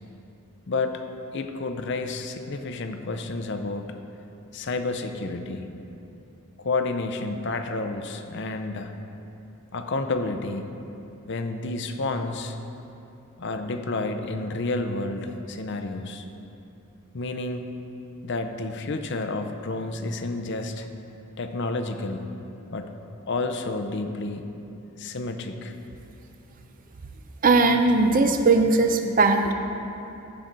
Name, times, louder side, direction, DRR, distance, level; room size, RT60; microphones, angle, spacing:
voice 1, 0.7-1.0 1.3-3.9 4.5-5.7 6.6-8.9 9.7-10.7 11.2-12.6 13.4-16.2 17.1-17.7 18.2-20.9 21.4-22.3 22.7-22.9 23.3-24.5 25.0-25.7, left 3 dB, 50° left, 7 dB, 0.6 m, -30 dB
voice 2, 27.4-29.5, right 3 dB, 40° right, 6 dB, 0.5 m, -19 dB
15.5 x 5.8 x 3.9 m, 2.9 s
head